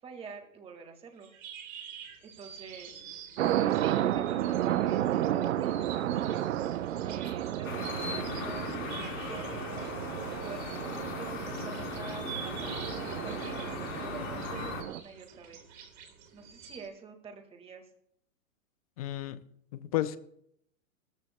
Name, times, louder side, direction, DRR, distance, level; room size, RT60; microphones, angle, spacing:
voice 1, 0.0-1.3 2.2-2.9 3.6-6.4 7.0-9.8 10.4-13.6 14.0-15.6 16.3-17.8, right 5 dB, 15° right, 1.7 m, -47 dB
sound 1, 1.2-16.9, right 6 dB, 30° right, 3.1 m, -47 dB
sound 2, 3.4-15.0, right 12 dB, 60° right, 0.7 m, -32 dB
sound 3, 7.6-14.8, left 6 dB, 70° left, 3.4 m, -39 dB
voice 2, 19.0-19.4 19.7-20.2, left 14 dB, 30° left, 0.5 m, -32 dB
18.5 x 14.0 x 2.2 m
hypercardioid pair, 150°, 40 cm